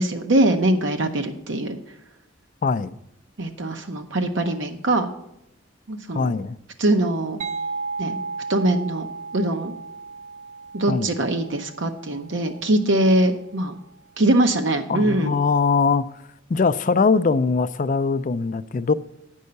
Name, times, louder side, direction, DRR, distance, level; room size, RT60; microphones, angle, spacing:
voice 1, 0.0-1.8 3.4-5.1 5.9-6.3 6.8-7.4 8.0-8.2 8.5-9.1 9.3-9.7 10.7-13.8 14.2-15.3, right 1 dB, 70° right, 0.8 m, -22 dB
voice 2, 2.6-3.0 6.1-6.6 10.9-11.1 14.9-16.0 16.5-18.9, left 4 dB, 40° left, 0.4 m, -21 dB
sound 1, 7.4-12.9, right 4 dB, 40° right, 0.4 m, -34 dB
9.5 x 5.5 x 6.6 m
head